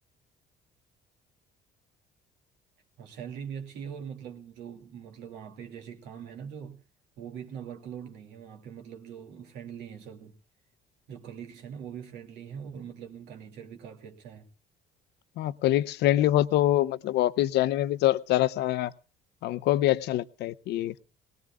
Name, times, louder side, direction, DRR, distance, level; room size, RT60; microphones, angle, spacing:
voice 1, 3.0-6.8 7.2-10.3 11.1-14.5, right 8 dB, 90° right, 2.6 m, -42 dB
voice 2, 15.4-18.9 19.4-21.0, left 14 dB, 80° left, 0.7 m, -25 dB
20.5 x 19.0 x 2.3 m
cardioid pair, 110°, 17 cm